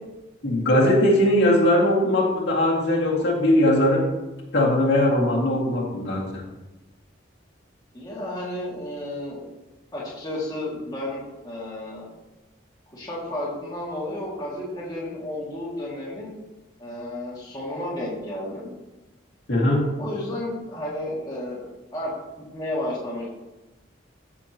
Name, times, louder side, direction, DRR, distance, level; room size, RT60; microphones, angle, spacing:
voice 1, 0.4-4.1 4.5-6.4 19.5-19.9, left 1 dB, 60° left, -4 dB, 2.2 m, -20 dB
voice 2, 7.9-9.4 9.9-12.0 12.9-16.4 16.8-18.7 20.0-21.7 21.9-22.1 22.5-23.3, left 1 dB, 20° left, -7 dB, 2.2 m, -32 dB
14.0 x 6.2 x 3.0 m, 1.1 s
head